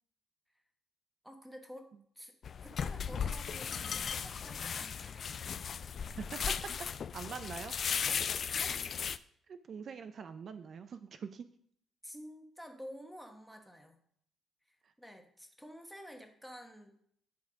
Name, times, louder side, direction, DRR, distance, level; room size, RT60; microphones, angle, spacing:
voice 1, 1.2-1.9 2.1-2.3 2.6-5.3 8.6-8.8 12.0-14.0 14.7-16.9, equal, ahead, 5 dB, 1.3 m, -50 dB
sound 1, 2.4-9.2, left 7 dB, 50° left, 0.3 m, -36 dB
voice 2, 6.2-7.8 9.5-11.5 14.8-14.9, right 6 dB, 55° right, 10 dB, 0.4 m, -44 dB
10.5 x 3.5 x 5.0 m, 0.67 s
cardioid pair, 90°, 0 cm